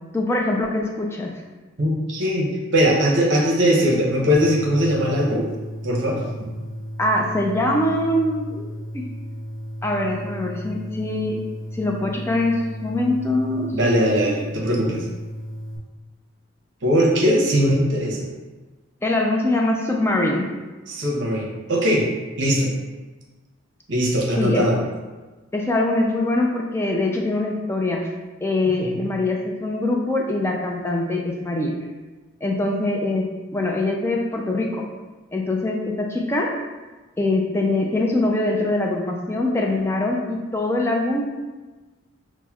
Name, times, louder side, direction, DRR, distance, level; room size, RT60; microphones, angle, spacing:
voice 1, 0.1-1.3 7.0-8.6 8.9-9.1 9.8-11.4 11.7-13.8 19.0-20.5 24.4-24.7 25.5-28.1 28.4-31.7 32.4-33.3 33.5-34.9 35.3-36.6 37.2-41.3, left 2 dB, 10° left, 0 dB, 0.3 m, -23 dB
voice 2, 1.8-5.5 5.8-6.5 13.7-15.0 16.8-18.2 20.9-22.1 22.4-22.7 23.9-24.8 28.8-28.9, equal, 60° right, -3 dB, 0.7 m, -20 dB
sound 1, 4.3-15.8, equal, 10° right, 0.8 m, -34 dB
5.7 x 2.1 x 2.3 m, 1.3 s
head